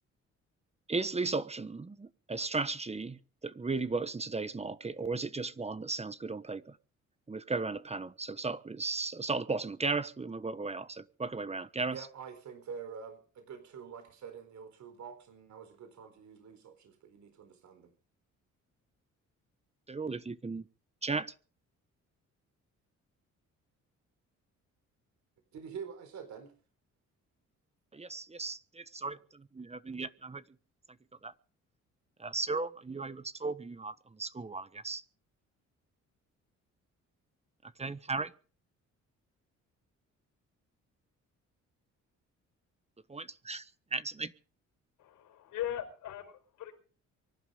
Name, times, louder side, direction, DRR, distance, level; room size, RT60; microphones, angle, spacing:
voice 1, 0.9-6.8 7.3-12.1 19.9-20.7 21.0-21.3 27.9-30.4 31.2-31.3 32.2-35.0 37.6-38.3 43.1-44.3, right 3 dB, 20° right, 14 dB, 1.2 m, -36 dB
voice 2, 11.9-17.9 25.5-26.5 29.1-29.2, right 6 dB, 65° right, 8 dB, 4.5 m, -46 dB
voice 3, 45.0-46.7, left 11 dB, 85° left, 8 dB, 4.8 m, -39 dB
24.0 x 11.5 x 5.2 m, 0.40 s
cardioid pair, 90°, 30 cm